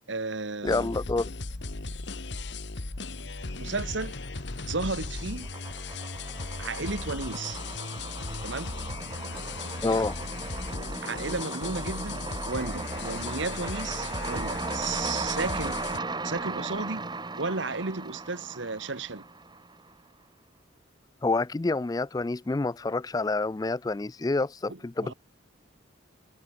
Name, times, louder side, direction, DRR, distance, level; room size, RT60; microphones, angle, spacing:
voice 1, 0.1-0.9 3.6-4.2 4.7-5.5 6.6-7.6 8.4-8.7 9.8-10.0 11.0-15.8 16.2-17.1 17.4-19.3 24.7-25.1, right 3 dB, 70° right, 1.5 m, -33 dB
voice 2, 0.6-1.3 9.8-10.1 21.2-25.1, left 3 dB, 20° left, 0.3 m, -28 dB
sound 1, 0.7-16.0, left 3 dB, 60° left, 1.4 m, -37 dB
sound 2, 3.7-4.4 4.7-19.9, right 3 dB, 20° right, 1.7 m, -37 dB
head